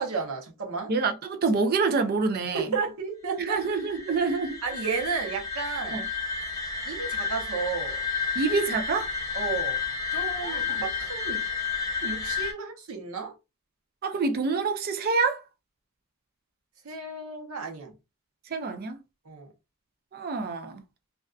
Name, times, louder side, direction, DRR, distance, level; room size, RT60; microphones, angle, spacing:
voice 1, 0.0-0.9 2.5-3.6 4.6-6.0 6.8-8.0 9.3-9.8 10.1-11.4 12.0-13.3 16.8-17.9 19.3-19.5, right 5 dB, 80° right, 0.7 m, -32 dB
voice 2, 0.9-2.7 3.4-4.6 5.9-6.1 8.4-9.1 10.4-10.8 14.0-15.4 18.5-19.0 20.1-20.8, right 4 dB, 45° right, 0.4 m, -27 dB
sound 1, 3.4-12.5, left 6 dB, 15° left, 0.5 m, -31 dB
2.5 x 2.3 x 2.3 m
head